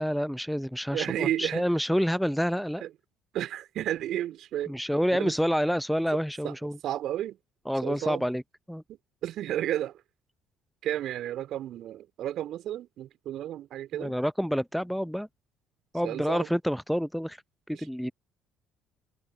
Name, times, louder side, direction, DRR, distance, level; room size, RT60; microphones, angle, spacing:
voice 1, 0.0-2.8 4.7-6.8 7.7-8.4 8.7-8.8 14.0-15.3 15.9-17.4 17.7-18.1, equal, ahead, 0.6 m, -28 dB
voice 2, 0.9-1.6 2.8-2.9 3.3-4.8 5.1-5.4 6.4-6.5 6.8-7.4 7.8-8.3 8.9-10.0 10.8-14.1 16.0-16.5 17.7-17.9, right 12 dB, 55° right, 2.8 m, -32 dB
figure-of-eight pair, 50°, 0 cm